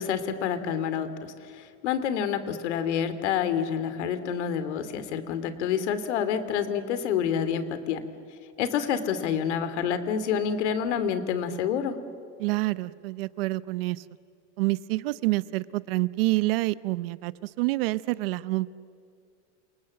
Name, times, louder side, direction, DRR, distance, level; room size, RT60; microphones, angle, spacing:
voice 1, 0.0-8.1 8.6-12.0, left 8 dB, 80° left, 11 dB, 2.8 m, -28 dB
voice 2, 12.4-14.0 14.6-18.7, right 20 dB, 55° right, 17 dB, 0.7 m, -27 dB
28.0 x 27.5 x 7.7 m, 2.3 s
supercardioid pair, 180°, 34 cm